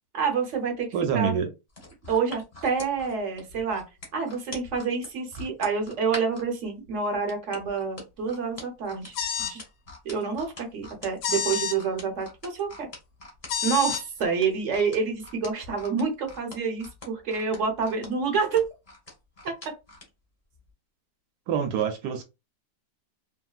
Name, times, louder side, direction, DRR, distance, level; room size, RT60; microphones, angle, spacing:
voice 1, 0.1-1.4 2.1-3.8 4.1-9.6 10.0-12.9 13.6-18.7 19.4-19.5, right 5 dB, 55° right, 0.9 m, -28 dB
voice 2, 0.9-1.5 21.5-22.2, right 8 dB, 75° right, 1.2 m, -26 dB
sound 1, 1.7-6.5 7.3-20.1 20.5-20.7, left 2 dB, 25° left, 0.9 m, -43 dB
sound 2, 9.1-9.6 11.2-11.8 13.5-14.0, left 8 dB, 85° left, 0.6 m, -28 dB
3.0 x 2.6 x 2.3 m
omnidirectional pair, 2.0 m